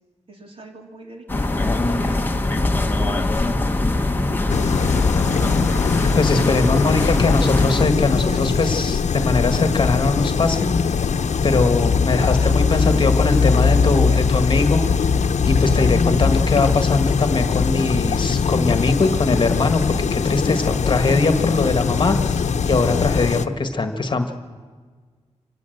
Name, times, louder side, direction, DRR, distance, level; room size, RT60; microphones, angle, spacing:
voice 1, 0.3-2.6 3.0-3.6 4.2-4.9 6.6-7.6 8.0-8.6 12.3-13.0 13.3-13.7 14.1-14.3 16.1-16.4, right 1 dB, 50° right, 2 dB, 3.5 m, -39 dB
sound 1, 1.3-7.8, left 2 dB, 15° left, 1.1 m, -22 dB
sound 2, 4.5-23.5, left 5 dB, 75° left, 0.9 m, -21 dB
voice 2, 6.1-11.1 11.4-15.1 15.5-24.3, left 3 dB, 40° left, 7 dB, 1.4 m, -21 dB
26.0 x 18.0 x 7.9 m, 1.5 s
wide cardioid pair, 155°, 12 cm